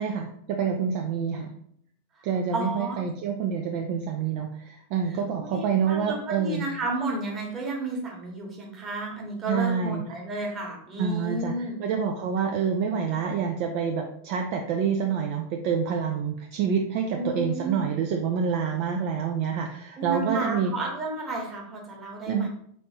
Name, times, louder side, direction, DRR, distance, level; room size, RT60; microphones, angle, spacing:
voice 1, 0.0-1.5 2.2-6.7 9.5-10.0 11.0-11.5 11.8-20.7 22.3-22.5, right 6 dB, 45° right, 3 dB, 0.4 m, -27 dB
voice 2, 2.5-3.0 5.3-11.8 17.1-17.8 20.0-22.5, right 2 dB, 25° right, 0 dB, 1.3 m, -32 dB
4.1 x 3.1 x 2.8 m, 0.68 s
figure-of-eight pair, 90°, 0 cm